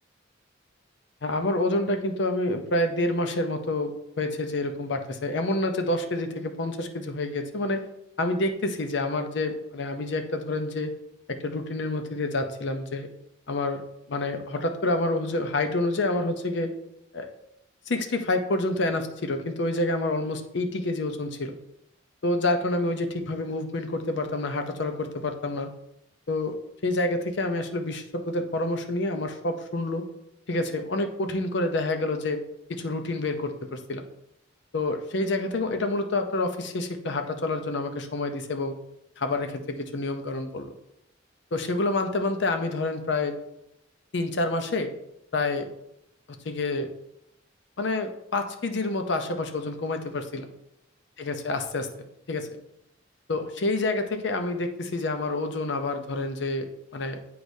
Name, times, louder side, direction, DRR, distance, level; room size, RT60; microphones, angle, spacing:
voice 1, 1.2-7.8 8.2-10.9 11.3-13.1 13.5-13.8 14.1-16.7 17.1-17.3 17.9-21.6 22.2-25.7 26.3-26.5 26.8-30.1 30.5-32.4 32.7-34.1 34.7-38.7 39.2-40.7 41.5-43.4 44.1-44.9 45.3-45.7 46.4-46.9 47.8-50.5 51.2-51.9 52.3-52.5 53.3-56.7 56.9-57.2, left 2 dB, 65° left, 6 dB, 0.6 m, -28 dB
8.0 x 4.7 x 2.7 m, 0.81 s
head